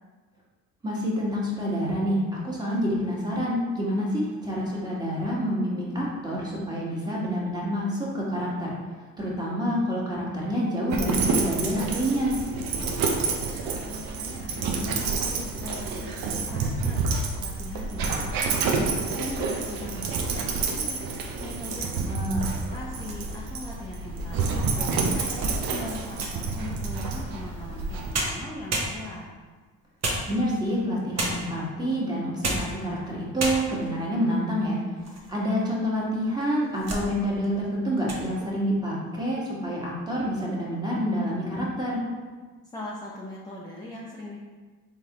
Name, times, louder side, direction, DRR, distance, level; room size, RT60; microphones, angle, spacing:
voice 1, 0.8-8.7 9.2-12.4 22.1-22.5 30.3-34.8 35.3-42.0, equal, 10° right, -5 dB, 1.5 m, -27 dB
Dog, 10.9-28.1, right 4 dB, 65° right, 0.7 m, -29 dB
voice 2, 13.2-18.9 19.2-22.2 22.5-29.3 42.7-44.4, left 2 dB, 10° left, -5 dB, 0.7 m, -40 dB
sound 1, 22.8-23.6 24.2-24.3 24.8-26.5 27.8-27.9 28.1-29.3 30.0-30.7 31.2-31.6 32.2-32.8 33.1-33.2 33.4-33.9 34.5-35.3 35.6-35.7 36.4-37.1 37.4-37.7 38.0-38.3, right 2 dB, 45° right, 1.0 m, -31 dB
3.8 x 3.5 x 2.9 m, 1.4 s
supercardioid pair, 70°, 38 cm